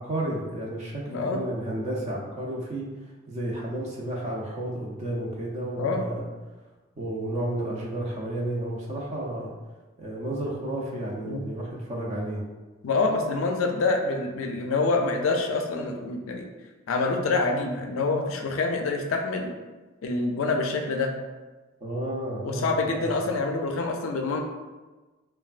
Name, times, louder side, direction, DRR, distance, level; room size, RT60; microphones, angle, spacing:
voice 1, 0.0-2.9 3.3-6.3 7.0-9.5 10.0-12.4 21.8-23.1, right 1 dB, 35° right, -3 dB, 0.5 m, -32 dB
voice 2, 1.1-1.4 5.8-6.0 11.3-11.5 12.8-16.5 16.9-19.5 20.0-21.1 22.4-24.4, left 3 dB, 70° left, 3 dB, 0.4 m, -26 dB
3.1 x 2.2 x 2.4 m, 1.2 s
head